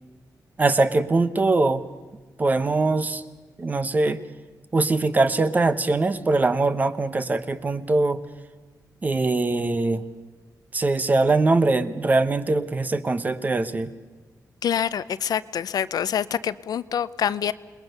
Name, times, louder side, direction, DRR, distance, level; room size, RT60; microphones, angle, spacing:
voice 1, 0.6-1.8 2.4-3.2 3.6-4.2 4.7-8.2 9.0-10.0 10.7-13.9, right 3 dB, 25° right, 12 dB, 1.0 m, -22 dB
voice 2, 14.6-17.5, left 9 dB, 70° left, 15 dB, 0.7 m, -26 dB
28.0 x 21.0 x 6.7 m, 1.3 s
wide cardioid pair, 175°, 7 cm